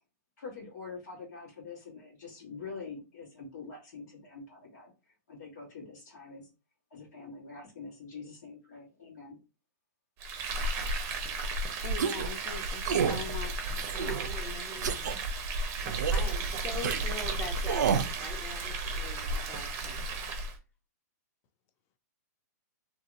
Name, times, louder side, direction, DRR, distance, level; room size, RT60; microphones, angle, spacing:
voice 1, 0.4-4.9 5.3-6.5 6.9-9.4, left 4 dB, 75° left, 1.3 m, -45 dB
Frying (food), 10.2-20.6, right 2 dB, 30° right, 0.6 m, -34 dB
voice 2, 11.8-13.8, left 7 dB, 30° left, 0.3 m, -42 dB
sound 1, 12.0-12.3 12.8-13.2 13.8-14.3 14.8-15.1 15.9-16.3 16.8-17.0 17.7-18.1, right 7 dB, 80° right, 0.4 m, -29 dB
voice 3, 13.9-15.3 15.6-15.7 16.1-20.1, left 1 dB, 15° left, 0.8 m, -42 dB
2.7 x 2.6 x 2.5 m
hypercardioid pair, 140°, 9 cm